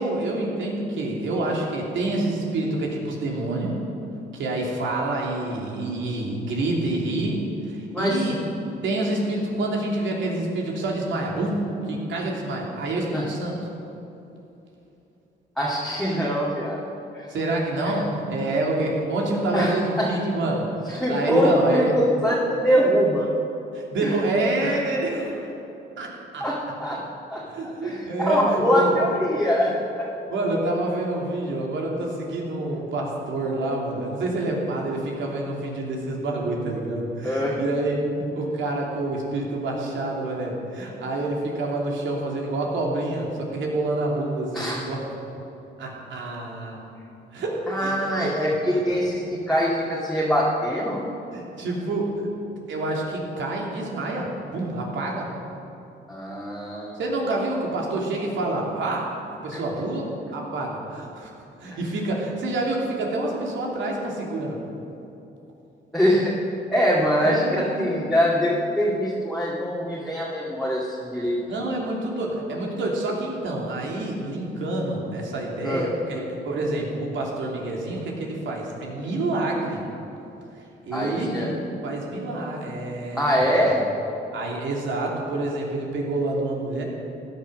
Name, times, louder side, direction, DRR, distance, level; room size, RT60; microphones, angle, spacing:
voice 1, 0.0-3.8 4.3-8.4 8.8-13.6 17.3-22.0 23.7-25.5 26.0-26.5 27.5-29.0 30.3-45.0 45.8-46.8 47.3-48.3 48.7-48.8 51.3-52.3 52.7-55.3 56.9-61.3 61.6-64.6 67.2-68.1 71.5-79.8 80.8-81.5 81.8-83.8 84.3-86.8, right 2 dB, 70° right, -2 dB, 3.2 m, -27 dB
voice 2, 7.9-8.3 13.1-13.3 15.6-16.8 17.1-17.3 17.8-17.9 19.5-20.1 20.9-23.3 24.0-24.2 24.6-24.7 26.4-27.0 27.3-27.4 27.8-30.1 37.2-37.6 44.5-44.8 47.7-51.0 56.1-57.0 59.5-59.6 65.9-66.3 66.7-67.4 67.8-71.7 75.6-75.9 80.9-81.5 83.1-83.8, equal, ahead, -6 dB, 2.4 m, -23 dB
15.5 x 10.5 x 6.5 m, 2.9 s
cardioid pair, 90°, 20 cm